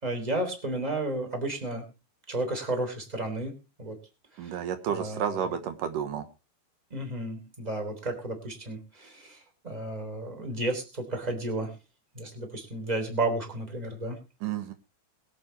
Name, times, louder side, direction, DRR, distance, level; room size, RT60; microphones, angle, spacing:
voice 1, 0.0-1.9 2.3-3.5 3.8-4.0 4.4-4.5 4.9-5.4 6.9-9.4 9.6-11.7 12.1-14.2, right 2 dB, 10° right, 5 dB, 3.0 m, -32 dB
voice 2, 4.4-6.2 14.4-14.7, right 8 dB, 80° right, 8 dB, 2.8 m, -31 dB
22.0 x 8.6 x 3.3 m, 0.30 s
omnidirectional pair, 3.8 m